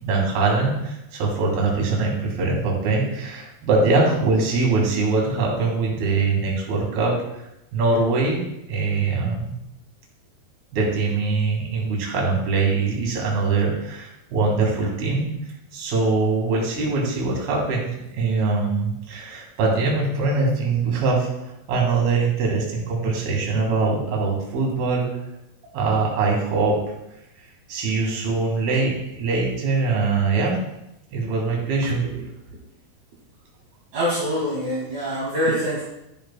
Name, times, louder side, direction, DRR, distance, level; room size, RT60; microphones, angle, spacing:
voice 1, 0.0-7.4 7.7-8.4 8.7-9.5 10.7-15.3 15.7-21.3 21.7-25.1 25.7-26.9 27.7-30.6 31.1-32.2, right 3 dB, 80° right, -1 dB, 4.0 m, -22 dB
voice 2, 33.9-35.8, equal, 50° right, -7 dB, 3.4 m, -24 dB
11.5 x 11.0 x 2.3 m, 0.86 s
omnidirectional pair, 4.4 m